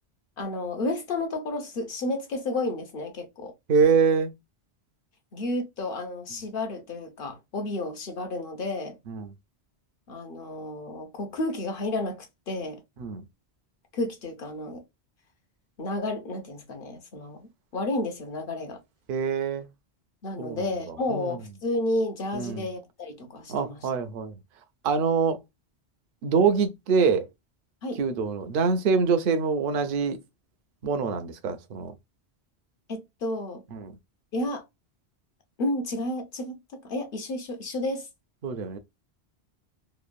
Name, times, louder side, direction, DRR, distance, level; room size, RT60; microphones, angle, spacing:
voice 1, 0.4-3.5 5.3-9.0 10.1-12.8 13.9-14.8 15.8-18.8 20.2-23.8 27.8-28.0 32.9-33.6 34.3-34.6 35.6-36.6 36.8-38.1, left 2 dB, 60° left, 0.8 m, -31 dB
voice 2, 3.7-4.3 9.1-9.3 13.0-13.2 19.1-19.7 20.4-21.4 22.3-22.7 23.5-24.4 24.8-25.4 26.2-27.3 28.0-30.2 30.8-31.9 33.7-33.9 38.4-38.8, right 5 dB, 60° right, 0.7 m, -25 dB
3.0 x 2.1 x 2.4 m
omnidirectional pair, 1.1 m